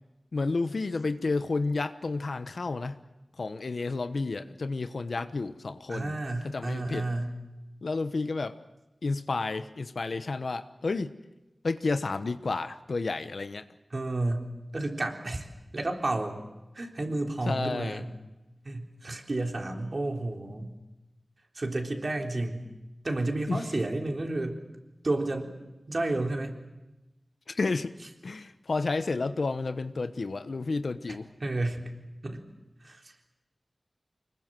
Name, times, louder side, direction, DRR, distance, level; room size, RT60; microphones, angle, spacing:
voice 1, 0.3-3.0 3.4-6.1 6.4-7.1 7.8-8.6 9.0-11.1 11.6-13.6 17.5-18.0 23.5-23.6 27.5-27.9 28.2-31.3, left 3 dB, 80° left, 10 dB, 1.1 m, -31 dB
voice 2, 5.9-7.3 13.9-14.5 14.7-15.5 15.7-16.4 16.8-18.1 18.7-20.7 21.6-22.6 23.0-24.6 25.0-25.5 25.9-26.5 31.1-31.8 32.2-32.4 32.8-33.0, right 2 dB, 50° right, 2 dB, 3.8 m, -31 dB
25.5 x 22.0 x 7.6 m, 1.0 s
wide cardioid pair, 80°, 0 cm